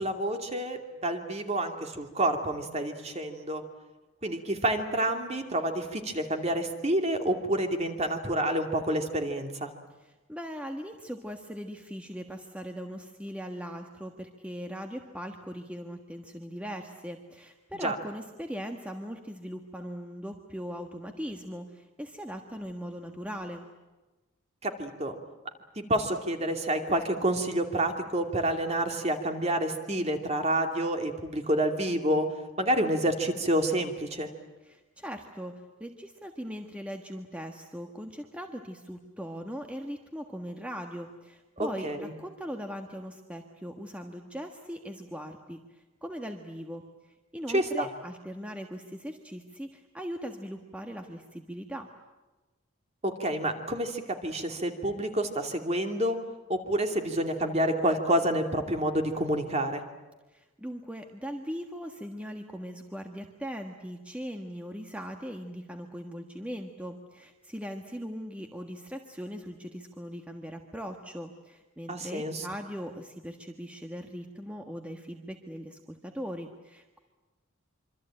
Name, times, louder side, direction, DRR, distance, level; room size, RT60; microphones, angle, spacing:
voice 1, 0.0-3.6 4.2-9.7 17.8-18.0 24.6-25.1 25.8-32.3 32.6-34.3 41.6-42.1 47.5-47.9 53.0-56.2 56.5-59.8 71.9-72.5, right 1 dB, 30° right, 5 dB, 2.7 m, -28 dB
voice 2, 10.0-23.7 34.6-51.9 60.3-77.0, equal, 5° right, 4 dB, 1.5 m, -40 dB
26.0 x 25.5 x 8.9 m, 1.1 s
head